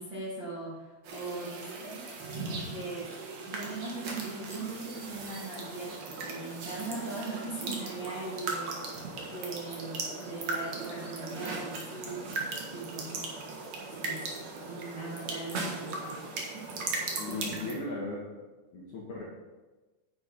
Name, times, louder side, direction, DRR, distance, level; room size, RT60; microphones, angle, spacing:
voice 1, 0.0-2.0 2.3-3.1 3.4-12.3 12.7-13.4 13.8-14.2 14.6-16.1 16.5-16.6, right 3 dB, 35° right, -8 dB, 2.1 m, -40 dB
sound 1, 1.0-17.7, right 3 dB, 60° right, 2.0 m, -38 dB
voice 2, 17.2-18.3 18.7-19.2, left 2 dB, 60° left, -4 dB, 2.2 m, -37 dB
9.7 x 8.4 x 4.2 m, 1.2 s
omnidirectional pair, 5.1 m